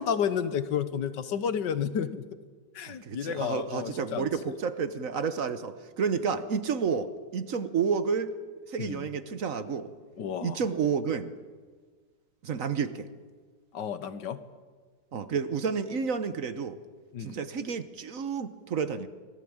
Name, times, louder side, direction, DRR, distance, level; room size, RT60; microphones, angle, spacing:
voice 1, 0.0-2.2 2.7-4.6 8.8-9.0 10.2-10.6 13.7-14.4 17.1-17.4, left 8 dB, 75° left, 12 dB, 1.8 m, -31 dB
voice 2, 2.9-8.3 8.7-9.9 10.4-11.3 12.4-13.1 15.1-16.8 17.2-19.1, right 6 dB, 50° right, 12 dB, 1.3 m, -30 dB
24.5 x 18.5 x 8.8 m, 1.5 s
omnidirectional pair, 2.0 m